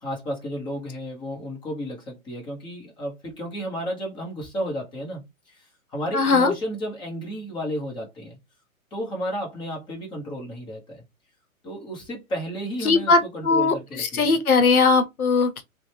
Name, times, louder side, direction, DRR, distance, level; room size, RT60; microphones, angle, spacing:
voice 1, 0.0-8.4 8.9-11.0 11.6-14.3, equal, 10° left, 0.7 m, -33 dB
voice 2, 6.1-6.5 12.8-15.6, left 4 dB, 80° left, 0.8 m, -20 dB
2.6 x 2.2 x 3.2 m
figure-of-eight pair, 125°, 43 cm